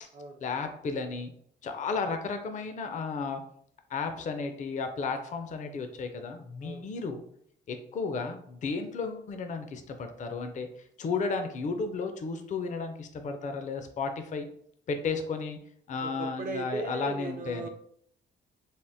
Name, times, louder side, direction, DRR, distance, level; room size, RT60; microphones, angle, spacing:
voice 1, 0.4-1.3 1.6-3.4 3.9-7.2 7.7-10.7 11.0-14.5 14.9-15.6 15.9-17.7, left 4 dB, 40° left, 6 dB, 0.4 m, -33 dB
voice 2, 16.0-17.7, right 3 dB, 45° right, 4 dB, 0.4 m, -37 dB
3.4 x 2.1 x 2.6 m, 0.67 s
cardioid pair, 90°, 20 cm